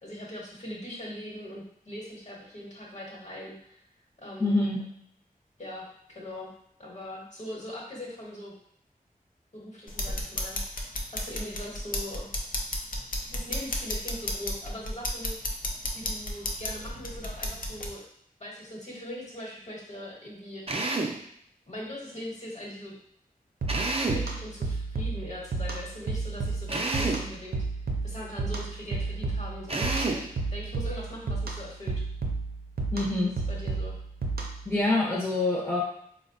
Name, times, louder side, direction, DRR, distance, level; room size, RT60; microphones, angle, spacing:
voice 1, 0.0-3.8 4.2-4.6 5.6-6.5 6.8-8.5 9.5-10.6 11.1-12.3 13.2-15.4 15.9-18.0 18.4-20.6 21.7-23.0 24.1-27.6 28.0-31.9 33.2-34.0, left 1 dB, 50° left, -4 dB, 1.0 m, -41 dB
voice 2, 4.4-4.8 32.9-33.3 34.7-35.8, left 2 dB, 15° left, -4 dB, 0.6 m, -25 dB
sound 1, 9.9-17.9, left 1 dB, 70° left, 0.5 m, -33 dB
Drill, 20.7-21.2 23.7-24.3 26.7-27.3 29.7-30.3, right 2 dB, 40° right, 0.4 m, -29 dB
sound 2, 23.6-34.7, right 3 dB, 90° right, 0.5 m, -32 dB
4.1 x 2.1 x 2.6 m, 0.71 s
wide cardioid pair, 75°, 15 cm